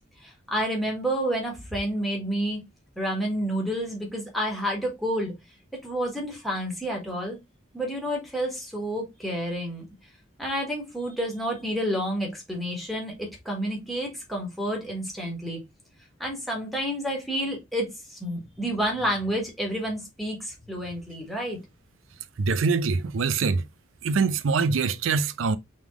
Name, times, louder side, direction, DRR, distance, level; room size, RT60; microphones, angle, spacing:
voice 1, 0.2-2.6 3.0-5.3 5.7-7.4 7.7-9.8 10.4-15.6 16.2-21.6, equal, ahead, 1.4 m, -29 dB
voice 2, 22.4-23.7 24.0-25.6, right 4 dB, 75° right, 0.5 m, -24 dB
3.6 x 3.2 x 3.5 m
head